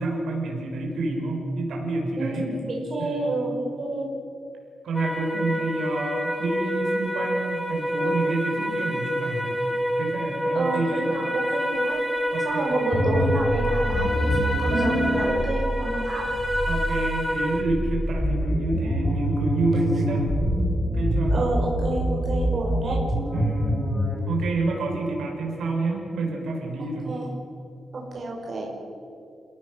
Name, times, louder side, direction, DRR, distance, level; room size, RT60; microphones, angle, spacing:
voice 1, 0.0-2.5 3.0-3.3 4.8-9.6 10.0-11.1 12.3-13.1 16.7-20.3 20.8-21.3 23.3-23.8 24.2-27.2, right 2 dB, 75° right, 0 dB, 5.5 m, -29 dB
voice 2, 2.2-4.1 10.5-12.0 12.4-16.3 21.3-23.0 27.0-27.3 27.9-28.7, right 2 dB, 35° right, -2 dB, 5.5 m, -29 dB
sound 1, 4.9-17.6, equal, 5° left, 3.0 m, -28 dB
sound 2, 12.9-24.2, equal, 20° left, 5.1 m, -25 dB
30.0 x 17.5 x 6.5 m, 2.6 s
wide cardioid pair, 180°, 0 cm